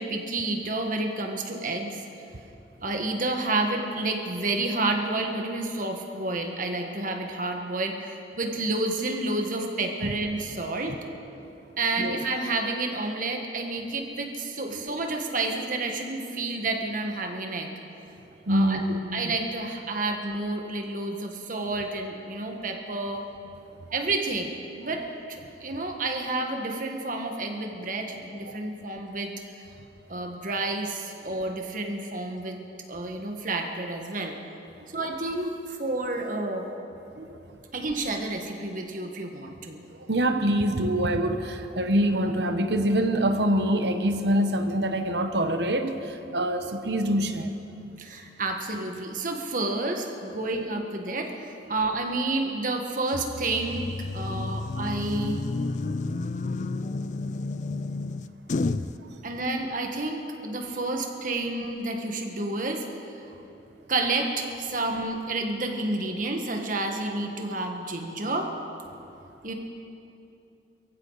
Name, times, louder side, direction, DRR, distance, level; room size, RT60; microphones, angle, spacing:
voice 1, 0.0-2.0 2.8-11.0 11.8-17.7 18.5-18.8 19.1-23.2 23.9-25.0 25.3-29.6 30.1-32.6 32.9-34.3 34.9-36.7 37.7-39.8 48.0-55.4 59.2-62.8 63.1-63.2 63.9-68.5 69.4-69.5, right 2 dB, 45° right, 3 dB, 1.6 m, -30 dB
voice 2, 18.5-19.3 28.5-28.6 31.3-31.4 37.2-37.4 40.1-47.5 59.0-59.1, right 1 dB, 65° right, 7 dB, 1.0 m, -25 dB
sound 1, 53.1-58.9, left 3 dB, 40° left, 0.4 m, -31 dB
22.5 x 15.0 x 4.1 m, 2.8 s
head